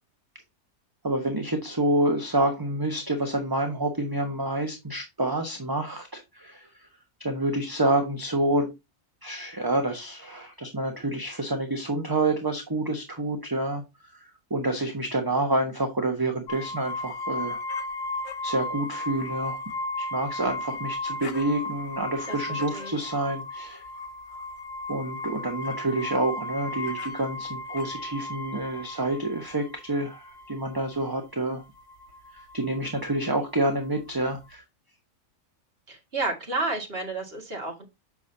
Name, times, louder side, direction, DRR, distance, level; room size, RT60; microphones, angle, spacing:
voice 1, 1.0-6.7 7.2-8.7 9.2-13.8 14.5-17.6 18.4-19.6 20.0-23.8 24.9-31.6 32.5-34.6, right 2 dB, 15° right, 1.2 m, -28 dB
sound 1, 16.5-34.5, left 2 dB, 85° left, 1.3 m, -35 dB
voice 2, 22.3-23.1 35.9-37.8, right 3 dB, 45° right, 2.2 m, -31 dB
8.4 x 6.2 x 2.8 m
omnidirectional pair, 1.4 m